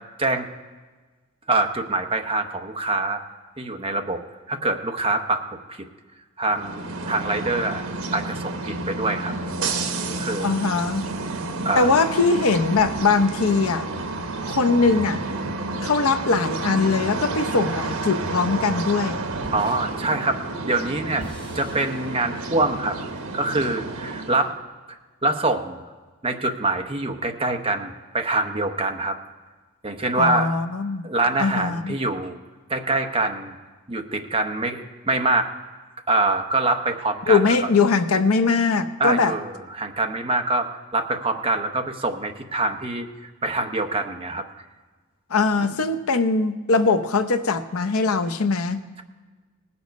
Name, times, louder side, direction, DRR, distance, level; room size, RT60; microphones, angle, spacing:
voice 1, 1.5-3.2 3.6-4.2 4.5-5.4 5.7-5.8 6.4-7.8 8.1-9.3 10.0-10.5 11.6-11.9 19.5-20.4 20.6-21.3 21.5-23.0 23.3-24.5 24.9-25.8 26.2-29.2 29.8-30.5 31.0-32.4 32.7-33.6 33.9-35.5 36.1-37.4 39.0-44.4 45.6-45.7, right 2 dB, 25° right, 5 dB, 0.8 m, -25 dB
sound 1, 6.4-24.5, right 3 dB, 80° right, 1.1 m, -30 dB
voice 2, 10.4-11.0 11.8-13.9 14.5-15.2 15.8-19.2 30.1-31.0 31.4-31.9 37.3-39.3 45.3-48.8, left 4 dB, 80° left, 9 dB, 0.7 m, -21 dB
sound 2, 19.3-20.1 21.2-23.2, equal, 25° left, 3.4 m, -44 dB
18.5 x 7.0 x 5.2 m, 1.3 s
head